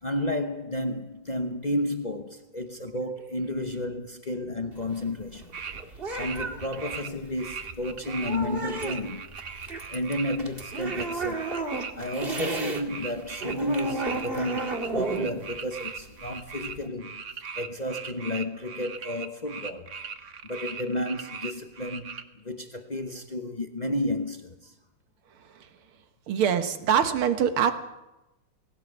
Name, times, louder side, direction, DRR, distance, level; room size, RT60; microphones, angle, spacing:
voice 1, 0.0-5.6 6.2-9.3 9.6-11.5 12.0-17.2 17.6-19.9 20.4-24.7, left 1 dB, 40° left, 0.5 m, -32 dB
sound 1, 4.7-12.8 13.1-16.9, right 3 dB, 25° right, 2.0 m, -33 dB
sound 2, 5.5-5.8 6.1-7.1 7.4-22.2, right 6 dB, 45° right, 1.1 m, -39 dB
voice 2, 26.3-27.7, right 8 dB, 75° right, 2.2 m, -23 dB
20.0 x 17.5 x 8.0 m
omnidirectional pair, 2.4 m